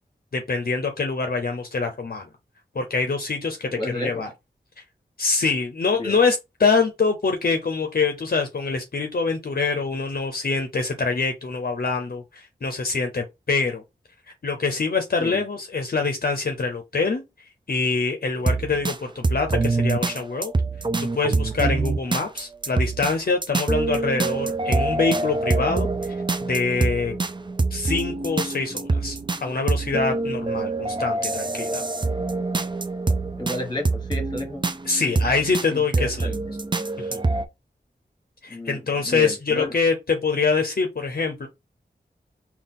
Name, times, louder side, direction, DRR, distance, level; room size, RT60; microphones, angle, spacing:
voice 1, 0.3-2.3 2.7-4.3 5.2-13.8 14.4-17.2 17.7-20.5 21.0-27.2 27.7-31.8 34.8-36.3 37.0-37.2 38.4-41.5, left 4 dB, 60° left, 0.6 m, -25 dB
voice 2, 3.7-4.2 6.0-6.2 15.2-15.4 33.1-34.6 35.7-36.4 38.5-39.7, left 1 dB, 25° left, 1.3 m, -32 dB
sound 1, 18.4-19.0 19.2-23.2 23.4-37.5, right 3 dB, 25° right, 0.4 m, -25 dB
3.9 x 2.3 x 3.6 m
wide cardioid pair, 55°, 18 cm